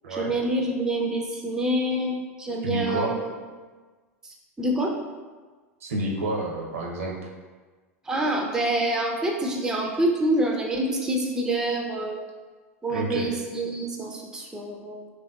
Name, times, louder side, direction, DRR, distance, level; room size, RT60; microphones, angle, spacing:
voice 1, 0.1-3.2 4.2-4.9 8.0-12.2 12.8-15.1, right 1 dB, 5° right, 0 dB, 0.3 m, -26 dB
voice 2, 2.6-3.1 5.8-7.3 12.9-13.3, right 1 dB, 70° right, -1 dB, 0.5 m, -29 dB
3.1 x 2.6 x 2.3 m, 1.4 s
figure-of-eight pair, 85°, 8 cm